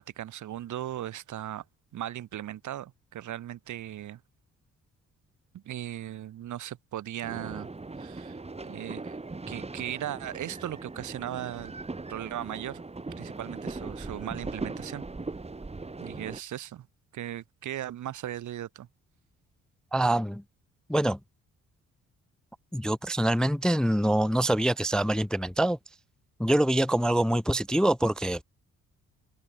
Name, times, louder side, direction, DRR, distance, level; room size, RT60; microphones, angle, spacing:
voice 1, 0.0-1.6 1.9-4.2 5.5-7.7 8.0-8.4 8.6-9.2 9.5-11.7 12.1-12.8 13.2-15.0 16.0-16.9 17.1-18.9, right 12 dB, 75° right, 6.5 m, -37 dB
sound 1, 7.2-16.4, right 3 dB, 20° right, 5.7 m, -39 dB
voice 2, 19.9-20.4 20.9-21.2 22.7-25.8 26.4-28.4, right 1 dB, 5° left, 0.3 m, -25 dB
cardioid pair, 90°, 30 cm